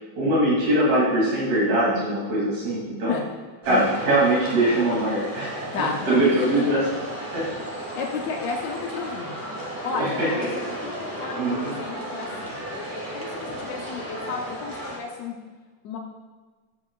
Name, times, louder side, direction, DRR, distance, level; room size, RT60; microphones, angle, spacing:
voice 1, 0.2-3.1 3.7-5.7 6.1-6.9 7.3-7.4 10.0-10.3 11.4-11.7, right 1 dB, 80° right, -7 dB, 4.6 m, -22 dB
sound 1, 3.6-15.0, right 1 dB, 25° right, 0.4 m, -34 dB
voice 2, 5.7-6.4 6.7-7.0 7.8-9.4 9.8-15.4 15.8-16.0, left 5 dB, 85° left, 1 dB, 1.5 m, -33 dB
13.5 x 7.9 x 2.4 m, 1.4 s
omnidirectional pair, 4.1 m